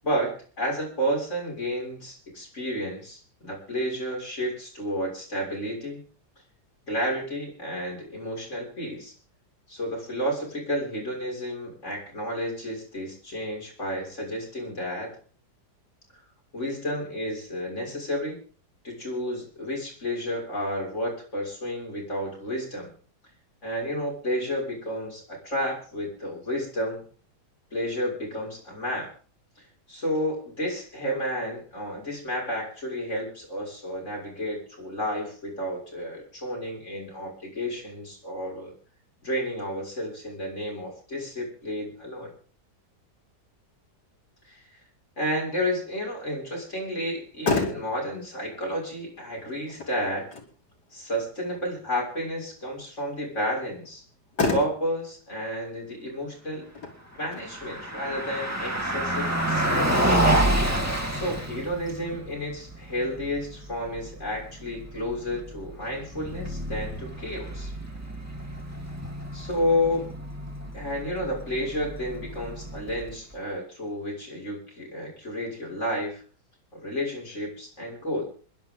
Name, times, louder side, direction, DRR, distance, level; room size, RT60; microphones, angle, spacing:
voice 1, 0.0-6.0 6.9-9.1 9.7-15.2 16.5-18.4 18.8-22.9 23.6-27.0 27.7-29.1 29.9-38.7 39.2-42.3 44.5-44.6 45.2-50.3 50.9-54.0 54.5-56.7 57.2-60.3 61.1-67.7 69.3-70.1 70.7-76.2 76.7-78.2, equal, 45° left, -2 dB, 6.9 m, -31 dB
Motor vehicle (road), 47.1-60.0, left 3 dB, 80° left, 3.4 m, -35 dB
Car passing by, 57.2-73.3, right 1 dB, 10° right, 2.2 m, -29 dB
27.0 x 11.0 x 3.9 m, 0.41 s
omnidirectional pair, 1.8 m